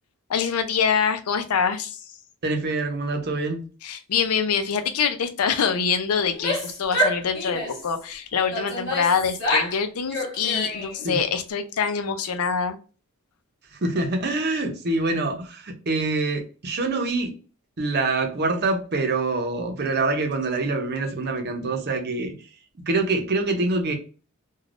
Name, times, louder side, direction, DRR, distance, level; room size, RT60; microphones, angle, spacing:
voice 1, 0.3-2.0 3.8-12.8, left 6 dB, 85° left, 0.5 m, -25 dB
voice 2, 2.4-3.6 11.0-11.2 13.7-17.3 17.8-22.3 22.9-23.9, right 3 dB, 50° right, 0.7 m, -25 dB
Female speech woman speaking / Yell, 6.2-7.9 8.5-9.8 10.1-11.1, left 1 dB, 55° left, 1.2 m, -27 dB
3.3 x 2.3 x 2.4 m
head